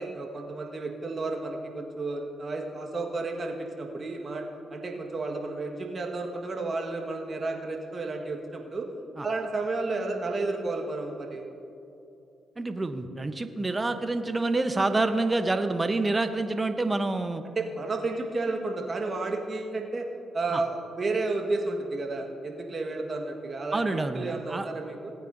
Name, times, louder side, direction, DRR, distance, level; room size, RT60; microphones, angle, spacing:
voice 1, 0.0-4.4 4.7-8.9 9.2-11.5 17.5-20.0 20.3-25.1, right 3 dB, 45° right, 1 dB, 1.6 m, -32 dB
voice 2, 12.6-17.4 20.5-20.6 23.7-24.7, right 2 dB, 30° right, 9 dB, 0.9 m, -27 dB
18.5 x 9.0 x 2.7 m, 2.8 s
hypercardioid pair, 40°, 0 cm